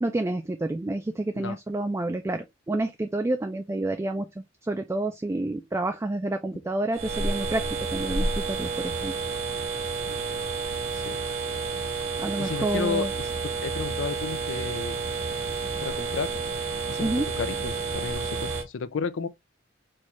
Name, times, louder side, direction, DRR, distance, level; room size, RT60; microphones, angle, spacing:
voice 1, 0.0-4.3 4.6-7.6 7.9-9.1 12.2-13.1 17.0-17.3, right 2 dB, 15° right, 0.3 m, -29 dB
sound 1, 6.9-18.6, right 4 dB, 85° right, 0.9 m, -30 dB
voice 2, 10.0-10.4 10.9-11.2 12.4-15.0 15.8-16.4 16.9-19.3, left 5 dB, 80° left, 0.4 m, -33 dB
4.4 x 2.4 x 3.0 m
head